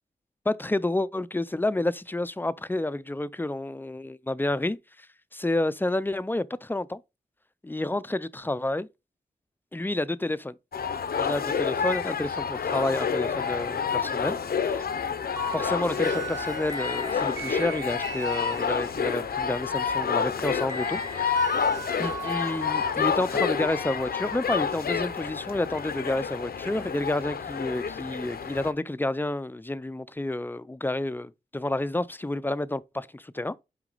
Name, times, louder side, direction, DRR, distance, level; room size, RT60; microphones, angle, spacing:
voice 1, 0.5-5.1 5.3-7.0 7.6-8.9 9.7-10.5 11.2-14.8 15.5-21.5 22.0-33.5, left 2 dB, 15° left, 0.5 m, -30 dB
sound 1, 10.7-28.7, left 6 dB, 80° left, 0.7 m, -29 dB
sound 2, 15.4-19.1 20.7-24.5, right 5 dB, 20° right, 1.5 m, -39 dB
6.0 x 5.0 x 3.9 m
wide cardioid pair, 70°, 16 cm